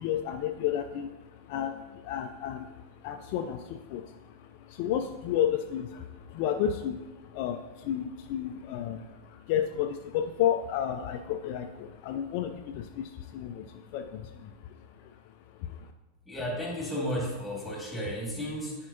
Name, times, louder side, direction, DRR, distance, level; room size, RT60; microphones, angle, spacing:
voice 1, 0.0-15.1 15.6-15.9, left 10 dB, 45° left, 6 dB, 0.3 m, -32 dB
voice 2, 16.3-18.9, equal, 5° left, -2 dB, 2.0 m, -33 dB
10.5 x 4.3 x 2.6 m, 1.1 s
figure-of-eight pair, 90°, 0 cm